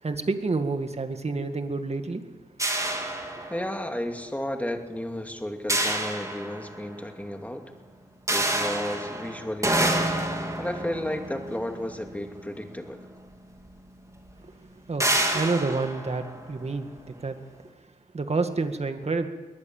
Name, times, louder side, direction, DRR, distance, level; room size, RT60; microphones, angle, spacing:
voice 1, 0.0-2.2 14.4-14.5 14.9-17.4 18.1-19.3, right 3 dB, 45° right, 7 dB, 2.1 m, -29 dB
sound 1, 2.6-4.0 5.7-7.0 8.3-12.7 13.7-13.8 14.1-14.3 15.0-17.0, right 1 dB, 20° right, 3.7 m, -28 dB
voice 2, 3.5-7.6 8.3-10.1 10.6-13.1, left 1 dB, 10° left, 4 dB, 2.5 m, -33 dB
22.0 x 19.5 x 7.4 m, 1.2 s
wide cardioid pair, 90°, 15 cm